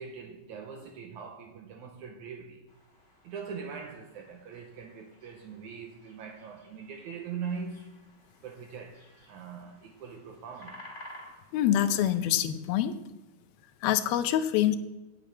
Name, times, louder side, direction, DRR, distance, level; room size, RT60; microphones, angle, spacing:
voice 1, 0.0-2.6 3.2-7.9 8.4-9.0 9.3-10.8, right 6 dB, 75° right, 1.8 m, -41 dB
sound 1, 2.7-12.4, left 1 dB, 20° left, 2.6 m, -54 dB
voice 2, 11.5-13.0 13.8-14.8, left 11 dB, 85° left, 2.5 m, -25 dB
8.3 x 7.3 x 8.5 m
omnidirectional pair, 4.2 m